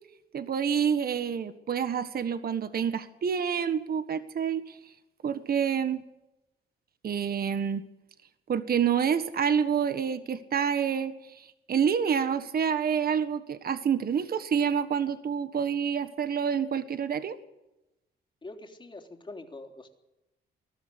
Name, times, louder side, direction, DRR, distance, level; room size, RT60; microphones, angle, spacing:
voice 1, 0.3-4.8 5.2-6.0 7.0-7.8 8.5-17.4, right 7 dB, 50° right, 11 dB, 1.5 m, -28 dB
voice 2, 18.4-19.9, left 2 dB, 25° left, 4 dB, 3.4 m, -44 dB
20.5 x 13.0 x 9.8 m, 0.94 s
cardioid pair, 90°, 20 cm